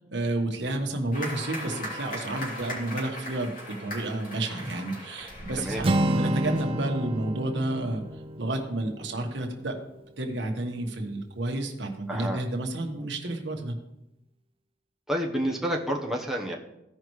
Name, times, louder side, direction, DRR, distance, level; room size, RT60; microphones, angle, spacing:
voice 1, 0.0-3.5 3.8-8.0 8.4-9.8 10.2-13.7, right 2 dB, 75° right, 3 dB, 1.3 m, -31 dB
sound 1, 1.1-6.6, left 1 dB, 50° left, 2.9 m, -39 dB
sound 2, 5.2-10.8, equal, 85° left, 2.1 m, -51 dB
Acoustic guitar, 5.8-9.8, right 1 dB, 30° right, 0.5 m, -29 dB
voice 2, 12.1-12.4 15.1-16.6, equal, ahead, -1 dB, 1.0 m, -29 dB
15.5 x 5.4 x 3.2 m, 0.89 s
head